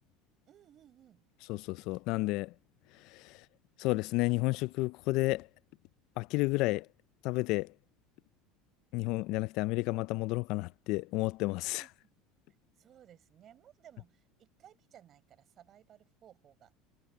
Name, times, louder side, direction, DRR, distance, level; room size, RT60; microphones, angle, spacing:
voice 1, 0.5-1.2 11.7-11.9 12.8-16.7, right 10 dB, 35° right, 6.6 m, -59 dB
voice 2, 1.5-2.5 3.1-3.4 3.8-5.5 6.2-6.9 7.2-7.7 8.9-11.8, left 21 dB, 60° left, 0.4 m, -31 dB
cardioid pair, 145°, 0 cm